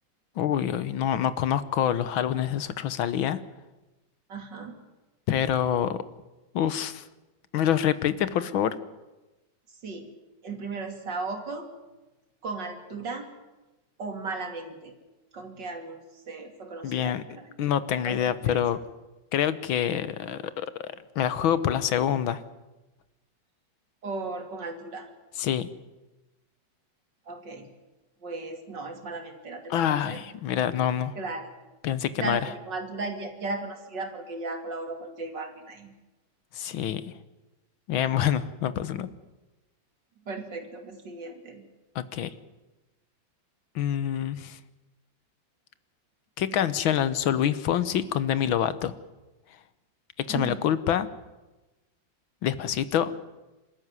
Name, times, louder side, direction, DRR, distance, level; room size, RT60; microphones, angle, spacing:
voice 1, 0.4-3.4 5.3-6.0 6.5-7.0 7.5-8.8 16.8-17.2 17.6-18.8 19.3-22.4 25.4-25.7 29.7-31.2 31.8-32.4 36.5-37.1 37.9-39.1 42.0-42.3 43.8-44.6 46.4-48.9 50.2-51.1 52.4-53.1, left 10 dB, 90° left, 14 dB, 1.8 m, -26 dB
voice 2, 4.3-4.7 9.8-10.1 10.4-11.7 12.4-13.3 14.0-14.9 15.3-17.5 18.1-18.6 19.9-20.0 24.0-25.1 27.3-27.7 28.2-30.2 31.1-31.5 32.2-35.9 38.0-38.1 40.3-41.7 50.3-50.6, right 3 dB, 65° right, 4 dB, 3.3 m, -36 dB
26.5 x 13.5 x 9.6 m, 1.1 s
omnidirectional pair, 2.1 m